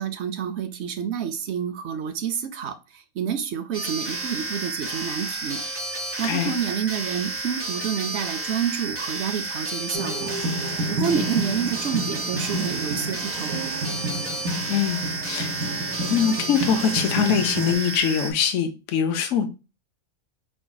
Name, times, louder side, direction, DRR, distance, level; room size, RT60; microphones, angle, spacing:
voice 1, 0.0-5.6 6.2-13.6, right 8 dB, 60° right, 0.8 m, -29 dB
sound 1, 3.7-18.3, right 2 dB, 15° right, 0.5 m, -31 dB
sound 2, 9.9-17.7, right 1 dB, 90° right, 1.1 m, -30 dB
voice 2, 14.7-15.5 16.1-19.5, left 8 dB, 70° left, 1.0 m, -23 dB
4.8 x 3.9 x 2.2 m
omnidirectional pair, 1.4 m